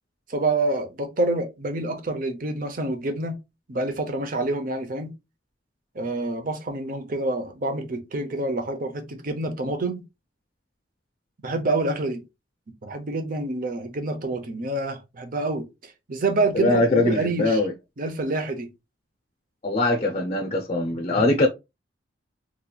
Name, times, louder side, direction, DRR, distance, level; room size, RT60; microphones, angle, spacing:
voice 1, 0.3-3.4 3.7-5.1 5.9-10.0 11.4-12.2 12.8-17.6 18.0-18.7, right 2 dB, 45° right, 0.7 m, -27 dB
voice 2, 16.5-17.7 19.6-21.5, left 2 dB, 35° left, 0.5 m, -22 dB
3.8 x 3.0 x 2.3 m
head